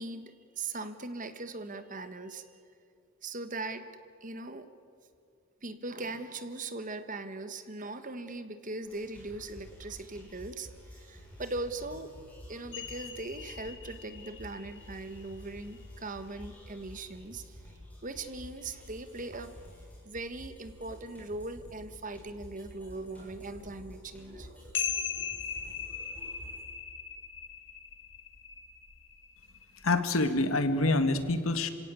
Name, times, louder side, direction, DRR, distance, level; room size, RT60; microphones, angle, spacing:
voice 1, 0.0-2.4 3.2-3.9 4.2-4.7 5.6-12.1 12.5-17.6 18.0-19.6 20.0-24.9, right 2 dB, 40° right, 10 dB, 1.5 m, -40 dB
sound 1, 8.8-26.6, equal, 5° left, 6.9 m, -51 dB
sound 2, 12.7-19.0 19.3-19.4 19.8-21.2 21.5-21.7 22.0-30.0, left 7 dB, 60° left, 2.1 m, -41 dB
voice 2, 29.8-31.7, left 2 dB, 75° left, 10 dB, 1.8 m, -26 dB
27.5 x 17.0 x 8.4 m, 2.5 s
head